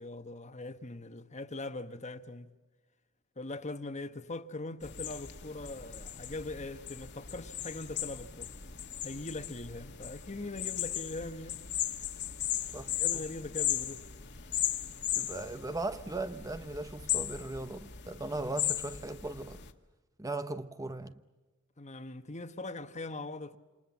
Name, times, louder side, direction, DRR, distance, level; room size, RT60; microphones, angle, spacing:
voice 1, 0.0-2.5 3.4-8.5 9.0-11.6 12.9-14.1 21.8-23.6, left 2 dB, 35° left, 1.3 m, -41 dB
sound 1, 4.8-19.7, left 11 dB, 55° left, 1.8 m, -37 dB
voice 2, 15.2-19.6 20.2-21.2, right 2 dB, 15° right, 0.8 m, -38 dB
28.0 x 28.0 x 7.3 m
head